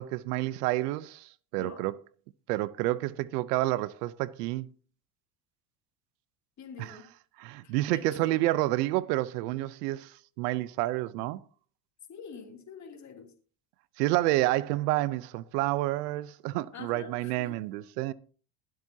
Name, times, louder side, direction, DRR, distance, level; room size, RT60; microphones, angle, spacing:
voice 1, 0.0-1.9 2.5-4.7 6.8-7.0 7.4-11.4 14.0-18.1, right 17 dB, 90° right, 0.8 m, -29 dB
voice 2, 6.6-7.1 7.6-8.4 12.1-13.3 16.7-17.6, left 6 dB, 35° left, 2.9 m, -46 dB
21.5 x 7.7 x 2.8 m
supercardioid pair, 105°, 46 cm